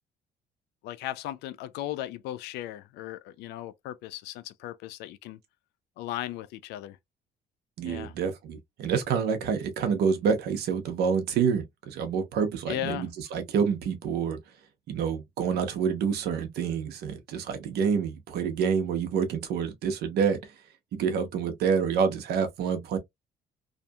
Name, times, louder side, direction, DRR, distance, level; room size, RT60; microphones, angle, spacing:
voice 1, 0.8-5.4 6.0-7.0 7.8-8.1 12.7-13.1, left 14 dB, 85° left, 0.4 m, -36 dB
voice 2, 7.8-14.4 14.9-20.4 21.0-23.0, right 6 dB, 75° right, 0.9 m, -27 dB
2.7 x 2.5 x 2.2 m
cardioid pair, 110°, 17 cm